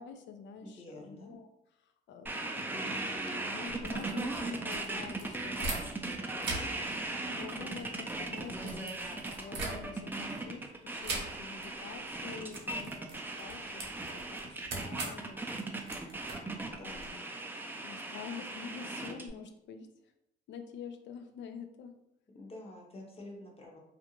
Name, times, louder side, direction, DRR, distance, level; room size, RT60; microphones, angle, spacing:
voice 1, 0.0-1.5 2.1-14.6 14.8-15.9 16.8-17.2 17.8-19.9 20.5-21.9, left 6 dB, 65° left, 7 dB, 0.4 m, -47 dB
voice 2, 0.6-1.3 16.7-17.2 22.3-23.8, left 2 dB, 30° left, 0 dB, 0.7 m, -48 dB
sound 1, 2.3-19.3, right 2 dB, 10° right, 0.4 m, -38 dB
sound 2, 3.7-6.1 6.4-10.2 11.0-11.7 12.0-12.2 12.5-17.1, right 2 dB, 60° right, 0.8 m, -42 dB
2.4 x 2.2 x 2.9 m, 0.86 s
cardioid pair, 90°, 20 cm